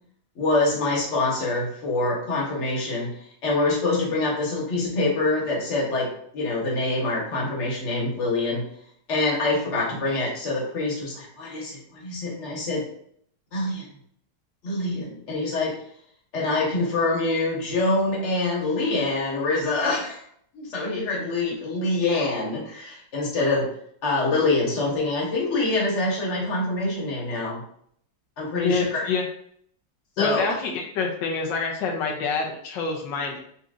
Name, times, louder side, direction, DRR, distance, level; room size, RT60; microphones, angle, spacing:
voice 1, 0.3-3.1 3.4-8.6 9.1-12.8 13.5-13.8 14.6-15.7 16.3-20.2 20.5-23.7 24.0-27.6 28.4-29.1 30.2-30.5, left 2 dB, 45° left, -4 dB, 1.4 m, -25 dB
voice 2, 28.6-29.2 30.2-33.4, left 4 dB, 85° left, 0 dB, 1.3 m, -27 dB
5.7 x 2.7 x 2.4 m, 0.65 s
omnidirectional pair, 1.9 m